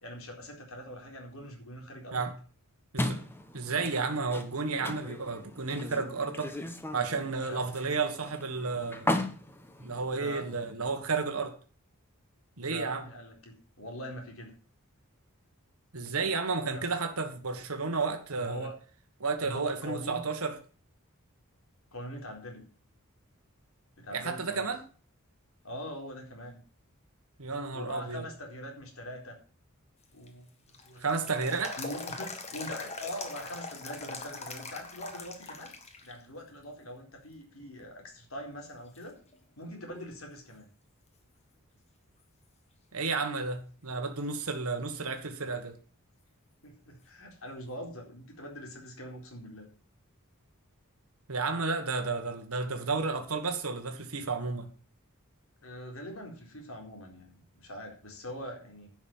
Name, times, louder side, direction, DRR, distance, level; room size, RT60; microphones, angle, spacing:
voice 1, 0.0-2.3 7.4-7.6 10.1-10.5 12.6-14.5 16.7-16.9 18.4-18.7 19.4-20.2 21.9-22.7 24.0-24.7 25.6-26.6 27.7-29.4 30.1-30.5 30.8-31.5 31.8-35.8 36.0-39.2 39.6-40.7 46.6-49.7 55.6-58.9, equal, 70° left, 4.2 m, -42 dB
sound 1, 3.0-10.7, left 1 dB, 10° left, 1.1 m, -37 dB
voice 2, 3.5-6.6 6.9-9.1 9.8-11.5 12.6-13.0 15.9-18.7 19.2-20.6 24.1-24.8 27.4-28.3 31.0-31.8 42.9-45.8 51.3-54.7, right 4 dB, 80° right, 1.6 m, -32 dB
sound 2, 30.0-36.1 36.5-36.6 37.4-37.9 38.4-38.5 39.0-40.2 40.5-40.6 44.0-44.1 47.0-47.1, left 3 dB, 30° left, 1.6 m, -42 dB
11.0 x 6.4 x 7.3 m
head